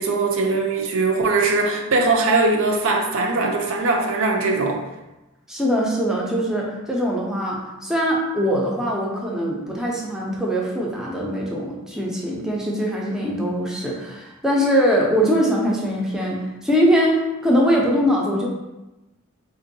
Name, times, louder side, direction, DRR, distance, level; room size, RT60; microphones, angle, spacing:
voice 1, 0.0-4.8, right 3 dB, 65° right, 2 dB, 0.5 m, -20 dB
voice 2, 5.5-18.5, equal, 5° right, -3 dB, 0.5 m, -22 dB
3.7 x 2.6 x 2.6 m, 1.0 s
head